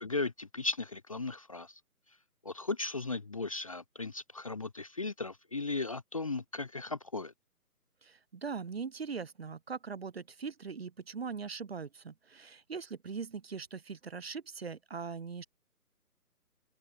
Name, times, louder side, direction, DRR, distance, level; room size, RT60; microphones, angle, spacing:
voice 1, 0.0-1.7 2.4-7.3, left 3 dB, 20° left, 0.8 m, -36 dB
voice 2, 8.0-15.5, right 5 dB, 40° right, 1.1 m, -41 dB
figure-of-eight pair, 150°, 47 cm